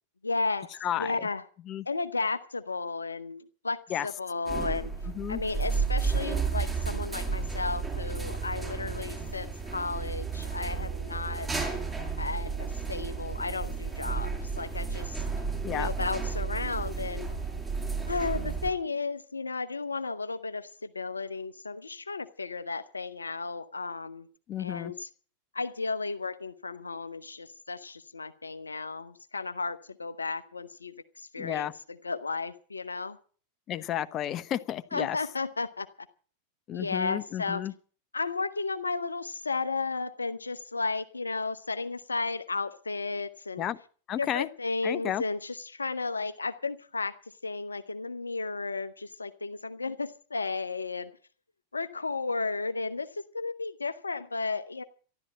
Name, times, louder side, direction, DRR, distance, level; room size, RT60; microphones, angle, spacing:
voice 1, 0.2-1.4 1.9-4.9 5.3-11.5 12.2-15.2 15.7-17.3 18.1-24.3 24.6-25.1 25.5-33.2 34.9-35.9 36.7-37.6 38.1-43.7 44.2-47.1 47.4-51.1 51.7-54.8, left 3 dB, 80° left, 0.9 m, -34 dB
voice 2, 0.8-1.2 1.7-1.8 3.9-4.1 5.1-5.4 15.6-15.9 24.5-24.9 31.4-31.7 33.7-35.2 36.7-37.7 43.6-43.8 44.1-44.5 44.8-45.2, left 11 dB, 30° left, 1.0 m, -32 dB
sound 1, 4.5-18.7, right 5 dB, 15° right, 5.7 m, -32 dB
13.0 x 12.0 x 7.4 m
figure-of-eight pair, 90°, 0 cm